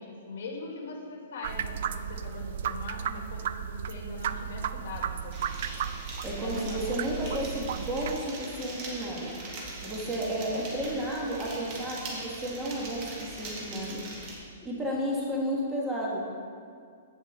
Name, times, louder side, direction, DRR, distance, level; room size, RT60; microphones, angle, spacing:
voice 1, 0.0-5.8 6.3-6.8 7.2-7.5 9.8-10.1, left 3 dB, 60° left, -1 dB, 2.3 m, -41 dB
sound 1, 1.4-8.2, right 9 dB, 55° right, 0.4 m, -34 dB
sound 2, 5.3-14.4, right 2 dB, 30° right, 2.0 m, -41 dB
voice 2, 6.2-9.5 9.8-14.0 14.6-16.2, equal, 10° right, -5 dB, 1.6 m, -32 dB
16.0 x 5.4 x 3.7 m, 2.2 s
hypercardioid pair, 155°, 0 cm